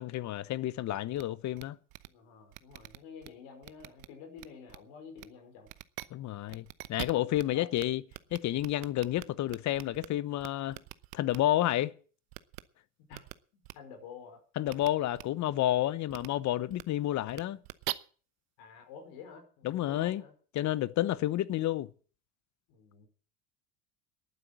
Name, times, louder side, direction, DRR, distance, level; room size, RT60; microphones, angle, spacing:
voice 1, 0.0-1.8 6.1-8.0 8.3-10.8 11.1-11.9 14.6-17.6 19.6-20.2 20.5-21.9, left 14 dB, 45° left, 0.9 m, -30 dB
sound 1, 1.2-1.3 1.6-1.7 1.9-2.1 2.5-3.3 3.6-4.1 4.4-4.8 5.2-5.3 5.7-6.1 6.5-7.4 7.8-7.9 8.1-10.1 10.4-11.4 12.3-12.6 13.1-13.3 13.6-13.7 14.7-14.9 15.1-15.2 16.1-16.3 16.7-16.8 17.3-17.9, right 23 dB, 65° right, 1.0 m, -42 dB
voice 2, 2.1-5.7 7.5-7.7 13.1-13.2 13.5-14.4 18.6-20.3 22.7-23.1, left 6 dB, 70° left, 5.3 m, -50 dB
12.0 x 9.3 x 8.8 m
supercardioid pair, 100°, 39 cm